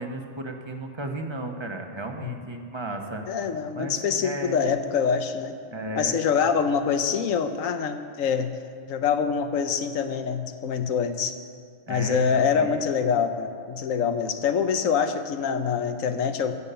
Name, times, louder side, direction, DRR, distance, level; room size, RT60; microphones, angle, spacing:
voice 1, 0.0-3.2 3.7-4.7 5.7-6.2 11.9-12.8, right 2 dB, 25° right, 3 dB, 1.0 m, -34 dB
voice 2, 3.3-5.5 6.0-8.5 8.9-11.4 11.9-16.5, left 6 dB, 80° left, 8 dB, 1.2 m, -25 dB
15.0 x 7.1 x 6.8 m, 2.2 s
omnidirectional pair, 1.3 m